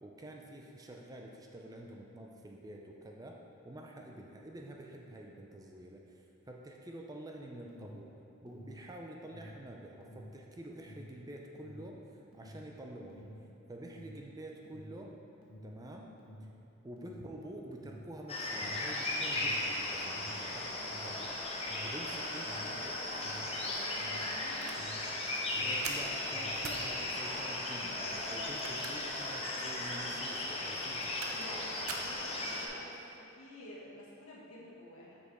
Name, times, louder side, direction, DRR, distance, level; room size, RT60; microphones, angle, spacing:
voice 1, 0.0-3.4 3.6-8.1 8.4-12.0 12.3-13.3 13.7-15.1 15.6-16.1 16.8-21.3 21.8-22.8 25.6-31.3, right 1 dB, 15° right, 0 dB, 0.5 m, -48 dB
Alarm, 7.7-25.1 25.4-26.7, equal, 90° left, 1.2 m, -52 dB
sound 1, 18.3-32.7, left 2 dB, 30° left, 0.8 m, -36 dB
voice 2, 22.4-24.9 31.3-35.2, left 1 dB, 70° left, -6 dB, 1.6 m, -51 dB
sound 2, 24.2-24.8 25.2-25.4 25.8-26.1 26.6-26.9 28.4-29.2 29.6-29.7 30.8-31.5 31.9-32.2, right 5 dB, 80° right, 0.6 m, -44 dB
6.5 x 5.4 x 4.6 m, 2.8 s
head